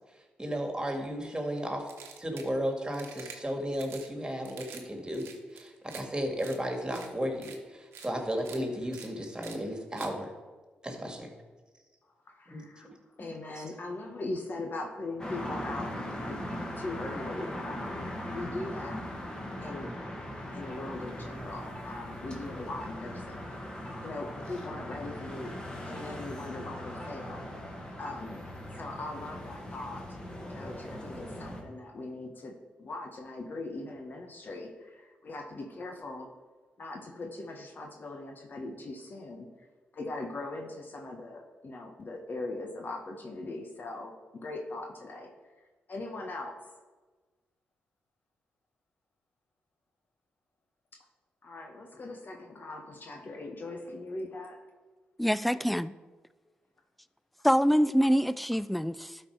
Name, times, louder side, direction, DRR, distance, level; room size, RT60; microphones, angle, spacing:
voice 1, 0.4-1.9 2.2-10.3 10.8-11.3 12.5-12.7 13.6-13.7, equal, 20° right, 3 dB, 2.1 m, -34 dB
sound 1, 1.9-2.5 2.9-3.4 3.7-4.1 4.4-4.8 5.1-6.0 6.4-6.6 6.9-7.1 7.4-7.6 7.9-8.1 8.4-8.6 8.9-9.1 9.4-9.6 10.0-10.1, right 7 dB, 80° right, 1.0 m, -47 dB
voice 2, 12.3-12.9 13.2-16.4 16.8-19.1 19.6-19.9 20.5-23.4 23.8-25.5 25.9-28.4 28.7-30.0 30.5-36.3 36.8-39.5 39.9-44.1 44.4-45.3 45.9-46.6 51.4-54.6, left 2 dB, 50° left, 2 dB, 1.2 m, -40 dB
sound 2, 15.2-31.6, left 1 dB, 20° left, 1.9 m, -40 dB
voice 3, 55.2-55.9 57.4-59.2, equal, ahead, 17 dB, 0.4 m, -25 dB
12.0 x 4.6 x 4.7 m, 1.3 s
supercardioid pair, 50°, 4 cm